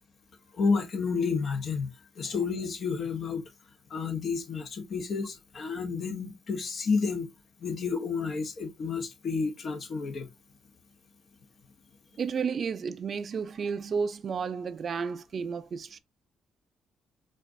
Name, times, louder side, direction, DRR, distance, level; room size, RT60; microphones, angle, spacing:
voice 1, 0.5-3.4 3.9-7.3 7.6-10.3, left 5 dB, 50° left, 1.0 m, -30 dB
voice 2, 12.2-16.0, right 6 dB, 50° right, 0.4 m, -32 dB
4.4 x 2.4 x 2.5 m
cardioid pair, 90°, 0 cm